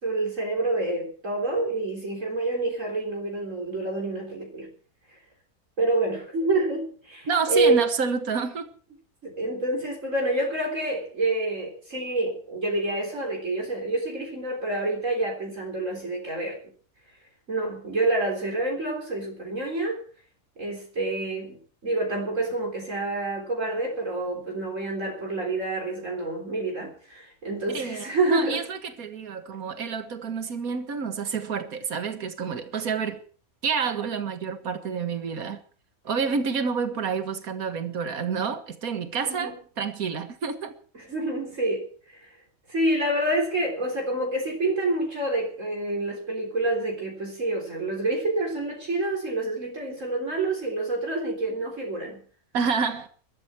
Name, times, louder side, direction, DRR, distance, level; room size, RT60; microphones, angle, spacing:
voice 1, 0.0-4.7 5.8-7.9 9.2-16.6 17.5-20.0 20.6-28.6 39.2-39.5 40.9-42.2 42.7-52.2, right 2 dB, 60° right, 4.2 m, -27 dB
voice 2, 7.3-8.7 27.7-33.2 33.6-35.6 36.0-40.7 52.5-53.1, right 5 dB, 75° right, 2.0 m, -29 dB
21.5 x 13.0 x 4.5 m
omnidirectional pair, 1.5 m